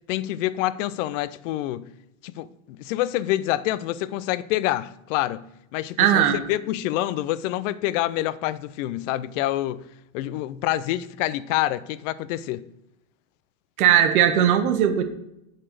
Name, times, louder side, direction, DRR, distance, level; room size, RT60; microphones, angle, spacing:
voice 1, 0.1-1.9 2.2-5.4 5.7-9.8 10.1-12.6, left 14 dB, 60° left, 0.5 m, -27 dB
voice 2, 6.0-6.4 13.8-15.0, right 9 dB, 85° right, 1.2 m, -18 dB
7.7 x 4.2 x 6.5 m
supercardioid pair, 135°, 43 cm